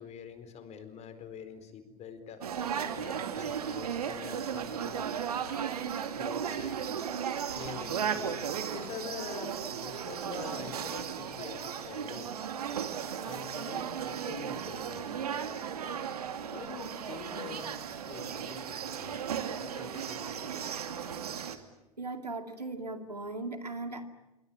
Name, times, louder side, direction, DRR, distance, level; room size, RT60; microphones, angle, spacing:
voice 1, 0.0-2.5 3.0-5.0 5.8-6.9 7.5-12.3 13.2-15.6 16.5-17.7 18.0-19.3 19.6-20.7, left 7 dB, 35° left, 10 dB, 4.3 m, -46 dB
sound 1, 2.4-21.6, right 8 dB, 70° right, 2.5 m, -35 dB
voice 2, 22.0-24.0, right 2 dB, 90° right, 8 dB, 2.5 m, -38 dB
26.5 x 24.5 x 8.9 m, 0.97 s
figure-of-eight pair, 90°, 20 cm